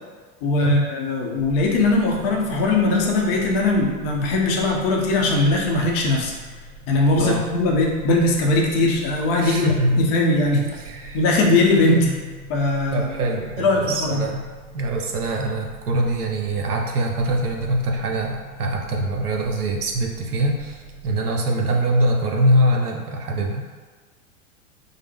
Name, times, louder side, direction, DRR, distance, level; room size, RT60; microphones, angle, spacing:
voice 1, 0.4-6.3 6.9-10.6 11.1-12.1 12.5-13.1 13.6-14.2, left 2 dB, 40° left, -1 dB, 0.7 m, -20 dB
sound 1, 1.4-21.2, right 1 dB, 60° right, 1.0 m, -42 dB
voice 2, 9.4-10.0 10.6-11.2 11.9-12.0 12.9-14.4 14.7-23.6, right 1 dB, 85° right, 1 dB, 0.6 m, -23 dB
3.1 x 2.0 x 3.2 m, 1.5 s
figure-of-eight pair, 90°, 44 cm